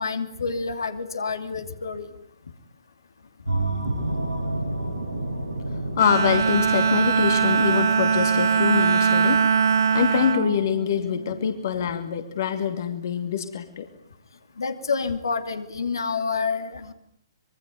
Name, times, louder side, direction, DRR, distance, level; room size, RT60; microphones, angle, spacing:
voice 1, 0.0-2.1 14.6-16.9, left 5 dB, 65° left, 8 dB, 2.7 m, -28 dB
sound 1, 3.4-11.8, right 2 dB, 90° right, 6.7 m, -31 dB
voice 2, 6.0-9.4 9.9-13.9, left 8 dB, 50° left, 8 dB, 2.5 m, -24 dB
Bowed string instrument, 6.0-11.5, right 6 dB, 55° right, 1.4 m, -22 dB
25.5 x 23.5 x 9.5 m, 0.69 s
figure-of-eight pair, 120°, 2 cm